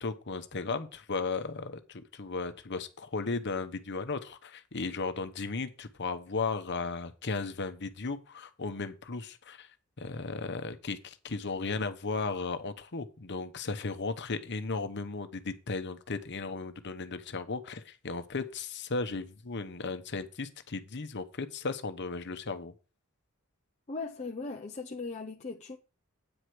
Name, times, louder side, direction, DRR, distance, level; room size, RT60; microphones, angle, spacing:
voice 1, 0.0-9.7 10.0-22.7, left 4 dB, 55° left, 1.0 m, -35 dB
voice 2, 23.9-25.8, left 3 dB, 30° left, 0.7 m, -38 dB
9.0 x 5.0 x 6.0 m
head